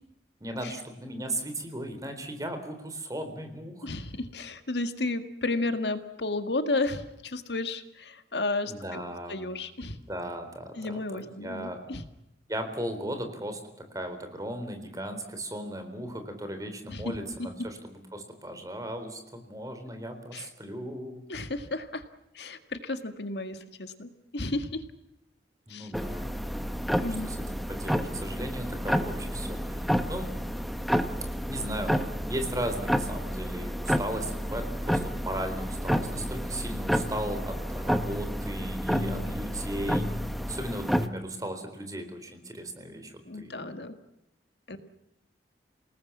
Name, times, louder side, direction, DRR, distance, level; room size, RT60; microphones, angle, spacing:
voice 1, 0.4-3.9 8.7-9.5 10.1-11.8 12.5-13.6 13.9-21.2 25.7-26.3 27.2-27.4 27.7-30.3 31.5-31.9 32.3-40.1 40.5-43.5 44.7-44.8, right 1 dB, 20° right, 7 dB, 3.9 m, -36 dB
voice 2, 3.8-9.0 9.3-10.0 10.8-12.0 16.9-17.7 20.3-20.5 21.3-22.0 22.3-24.8 25.7-25.9 27.0-27.3 38.9-39.3 43.3-44.0 44.7-44.8, left 2 dB, 75° left, 8 dB, 1.8 m, -33 dB
sound 1, 25.9-41.1, equal, ahead, 1.1 m, -30 dB
28.5 x 19.0 x 7.3 m, 0.88 s
head